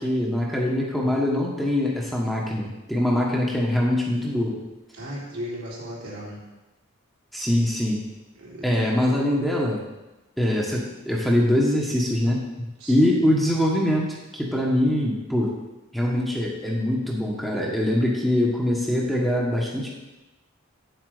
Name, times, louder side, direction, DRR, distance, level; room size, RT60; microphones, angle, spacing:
voice 1, 0.0-4.6 7.3-8.0 8.6-9.8 10.4-12.4 12.9-15.6 15.9-19.9, left 1 dB, ahead, -3 dB, 1.3 m, -23 dB
voice 2, 4.9-6.4 8.4-8.7 12.8-13.1, equal, 85° right, -5 dB, 3.5 m, -36 dB
8.7 x 7.8 x 5.0 m, 1.1 s
head